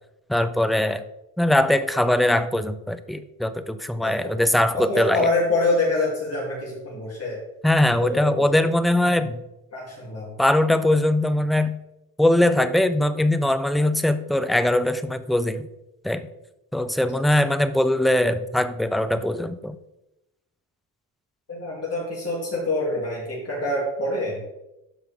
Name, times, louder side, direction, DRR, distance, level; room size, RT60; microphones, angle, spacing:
voice 1, 0.3-1.0 1.4-5.2 7.6-9.4 10.4-11.8 12.2-15.7 16.0-16.3 16.7-19.8, left 1 dB, ahead, 10 dB, 0.3 m, -21 dB
voice 2, 4.0-7.4 8.0-8.5 9.7-10.3 21.5-24.4, left 2 dB, 35° left, -4 dB, 2.6 m, -26 dB
12.5 x 4.9 x 3.5 m, 0.90 s
cardioid pair, 130°, 40 cm